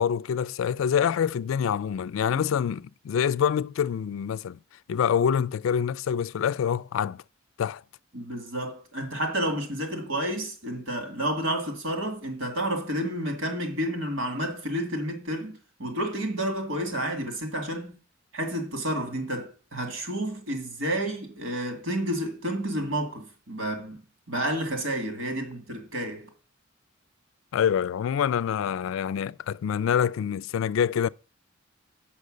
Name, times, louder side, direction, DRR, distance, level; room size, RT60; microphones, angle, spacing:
voice 1, 0.0-4.6 4.9-7.2 7.6-7.8 27.5-31.1, left 8 dB, 80° left, 0.3 m, -26 dB
voice 2, 8.1-18.0 18.3-24.0 24.3-26.3, right 1 dB, 80° right, 2.0 m, -30 dB
6.7 x 5.6 x 6.3 m
head